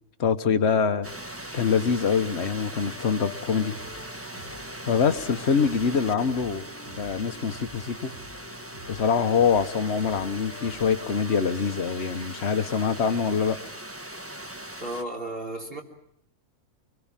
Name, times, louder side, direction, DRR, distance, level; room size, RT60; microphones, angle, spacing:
voice 1, 0.2-1.1 1.5-3.8 4.9-6.7 7.0-8.1 8.9-13.6, left 6 dB, 50° left, 10 dB, 1.4 m, -24 dB
sound 1, 1.0-15.0, right 1 dB, 10° right, 1.3 m, -40 dB
sound 2, 2.8-13.0, equal, 80° right, 6.9 m, -51 dB
sound 3, 2.9-12.5, left 7 dB, 70° left, 1.8 m, -48 dB
voice 2, 14.8-15.8, right 1 dB, 40° right, 0 dB, 3.4 m, -33 dB
25.5 x 21.0 x 9.0 m, 0.73 s
omnidirectional pair, 1.5 m